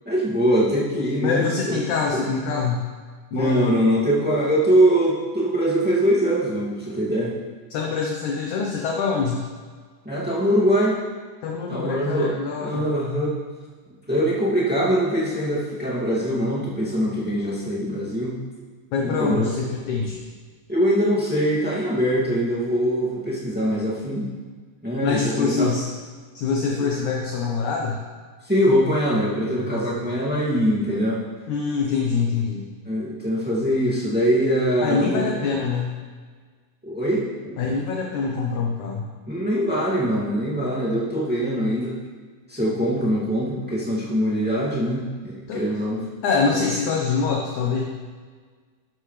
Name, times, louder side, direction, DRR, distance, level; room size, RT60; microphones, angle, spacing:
voice 1, 0.0-1.8 2.1-2.4 3.3-7.3 10.0-11.0 11.7-12.3 12.6-13.3 14.1-18.4 19.0-19.5 20.7-24.3 24.8-25.7 26.8-26.9 28.4-31.2 32.8-35.5 36.8-37.6 39.3-42.0 42.5-46.0, equal, 5° right, -7 dB, 1.0 m, -22 dB
voice 2, 1.2-2.8 3.3-3.7 7.7-9.4 11.4-12.8 18.9-20.2 25.0-25.9 26.4-28.0 29.6-30.0 31.5-32.7 34.8-35.9 37.6-39.1 45.5-45.6 46.2-47.8, left 5 dB, 70° left, -1 dB, 2.0 m, -25 dB
12.5 x 11.5 x 3.3 m, 1.6 s
omnidirectional pair, 4.5 m